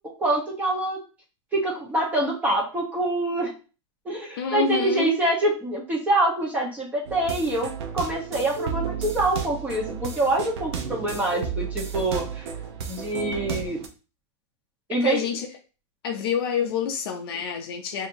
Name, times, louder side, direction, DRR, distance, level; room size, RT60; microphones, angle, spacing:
voice 1, 0.2-1.0 1.5-3.5 4.0-12.5 12.9-13.8 14.9-15.2, right 1 dB, 10° right, -3 dB, 1.0 m, -25 dB
voice 2, 4.4-5.2 14.9-15.5 16.0-18.1, left 7 dB, 50° left, 4 dB, 0.6 m, -27 dB
sound 1, 7.1-13.9, right 6 dB, 55° right, 0.8 m, -32 dB
4.4 x 2.8 x 2.6 m, 0.34 s
supercardioid pair, 160°, 16 cm